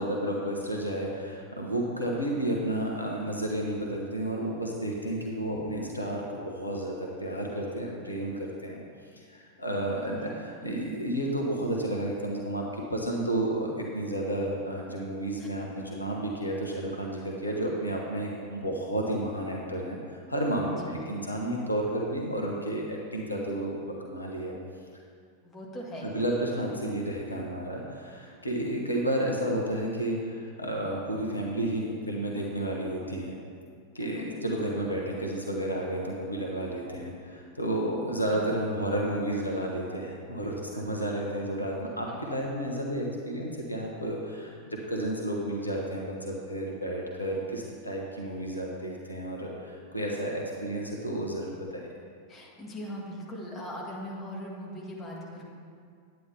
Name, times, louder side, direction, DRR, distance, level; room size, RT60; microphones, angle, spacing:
voice 1, 0.0-8.8 9.1-24.5 26.0-33.4 33.9-51.8, right 1 dB, 85° left, -1 dB, 1.1 m, -31 dB
voice 2, 20.7-21.1 25.4-26.1 34.0-34.3 38.3-38.5 42.1-42.2 52.3-55.4, equal, 20° left, -3 dB, 2.0 m, -40 dB
9.4 x 9.3 x 3.4 m, 2.2 s
figure-of-eight pair, 90°, 0 cm